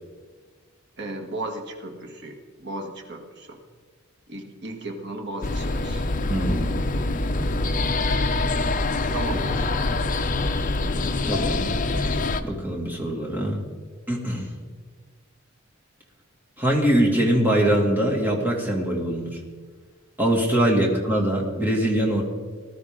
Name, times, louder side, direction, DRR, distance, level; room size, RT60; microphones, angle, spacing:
voice 1, 1.0-3.6 4.3-6.0 8.4-8.5 9.1-9.7 20.8-20.9, right 2 dB, 55° right, 2 dB, 1.8 m, -35 dB
sound 1, 5.4-12.4, left 2 dB, 40° left, 0.6 m, -25 dB
voice 2, 6.3-6.8 11.2-11.8 12.4-13.6 14.1-14.5 16.6-19.4 20.2-22.2, right 1 dB, 10° right, -2 dB, 2.3 m, -23 dB
19.0 x 12.5 x 3.8 m, 1.5 s
head